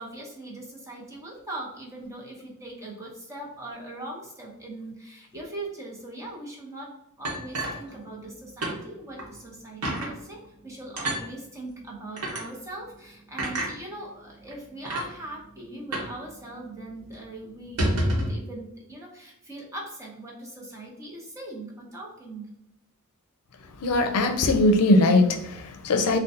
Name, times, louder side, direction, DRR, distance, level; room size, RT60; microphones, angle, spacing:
voice 1, 0.0-6.9 7.2-22.4, right 1 dB, 15° right, -3 dB, 0.8 m, -40 dB
sound 1, 7.2-8.3 8.6-8.8 9.2-9.3 9.8-10.1 11.0-11.2 12.2-12.4 13.4-13.7 14.5-14.6 14.8-15.1 15.9-16.2 16.4-16.5 16.9-17.1 17.6-18.4, right 1 dB, 85° right, 1.0 m, -28 dB
voice 2, 23.6-26.2, left 2 dB, 85° left, 5 dB, 0.5 m, -21 dB
3.8 x 2.2 x 2.6 m, 0.83 s
head